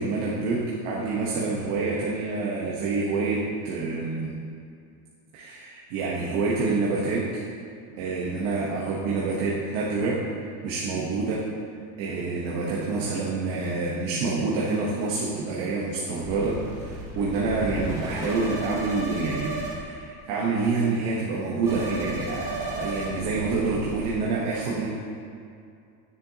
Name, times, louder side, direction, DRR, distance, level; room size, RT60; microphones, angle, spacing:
voice 1, 0.0-4.4 5.3-7.2 8.0-10.2 10.6-11.4 12.0-24.9, right 3 dB, 50° right, -5 dB, 1.1 m, -27 dB
sound 1, 16.2-19.8 20.0-20.4 20.6-20.7 21.0-21.4 21.6-24.1, right 1 dB, 5° right, 1.7 m, -35 dB
9.8 x 6.9 x 2.8 m, 2.4 s
cardioid pair, 170°, 46 cm